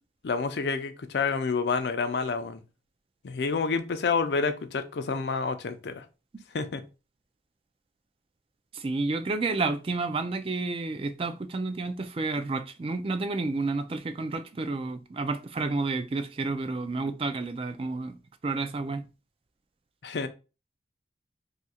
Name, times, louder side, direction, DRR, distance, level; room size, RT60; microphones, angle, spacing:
voice 1, 0.2-2.6 3.2-6.0 6.5-6.8 20.0-20.3, left 4 dB, 70° left, 0.5 m, -28 dB
voice 2, 8.7-18.1 18.4-19.0, right 3 dB, 30° right, 0.3 m, -30 dB
2.7 x 2.4 x 4.2 m
head